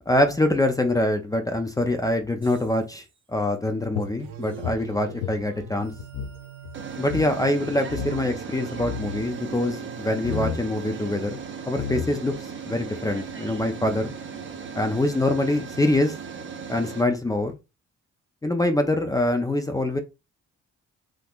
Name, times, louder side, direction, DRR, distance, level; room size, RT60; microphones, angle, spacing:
voice 1, 0.1-3.0 3.3-5.9 7.0-11.4 11.7-12.3 12.7-14.1 14.7-16.1 16.7-17.5 18.4-20.0, left 1 dB, 10° left, 0.5 m, -24 dB
sound 1, 2.4-2.9 4.5-4.6 6.7-17.0, right 6 dB, 40° right, 0.8 m, -37 dB
sound 2, 3.9-6.4 6.7-6.8 7.0-7.3 7.9-8.4 8.7-9.3 10.2-10.6 11.4-11.5 11.8-12.4, left 7 dB, 85° left, 0.6 m, -32 dB
sound 3, 4.2-11.7, right 9 dB, 80° right, 0.5 m, -43 dB
3.6 x 2.8 x 2.4 m
cardioid pair, 90°, 30 cm